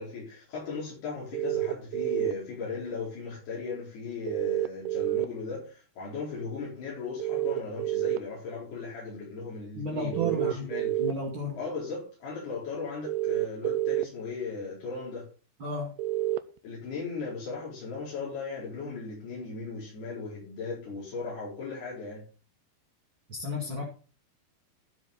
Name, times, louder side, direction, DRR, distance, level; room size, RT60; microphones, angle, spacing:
voice 1, 0.0-11.0 11.5-15.3 16.6-22.2, left 4 dB, 75° left, 6.4 m, -37 dB
sound 1, 1.3-2.3 4.3-5.3 7.2-8.2 10.1-11.1 13.1-14.0 16.0-16.4, right 12 dB, 85° right, 2.8 m, -28 dB
voice 2, 9.8-10.7 11.0-11.6 15.6-15.9 23.3-23.8, equal, 35° right, 2.6 m, -32 dB
14.5 x 7.8 x 4.2 m
omnidirectional pair, 4.7 m